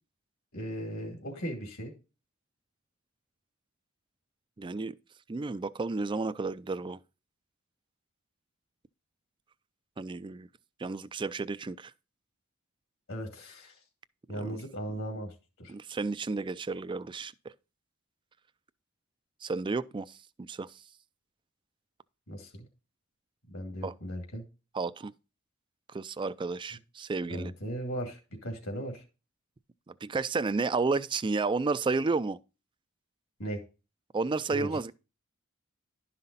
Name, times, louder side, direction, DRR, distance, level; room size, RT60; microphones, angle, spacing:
voice 1, 0.5-1.9 13.1-13.8 14.3-15.7 22.3-22.6 23.5-24.4 27.3-29.0 33.4-33.6 34.5-34.9, right 1 dB, 75° left, 2.4 m, -37 dB
voice 2, 4.6-4.9 5.3-7.0 10.0-10.5 10.8-11.9 14.3-14.6 15.7-17.3 19.4-20.2 20.5-20.7 23.8-23.9 24.7-25.1 25.9-27.5 29.9-32.4 34.1-34.9, right 3 dB, 25° right, 0.3 m, -31 dB
11.5 x 5.7 x 4.0 m
head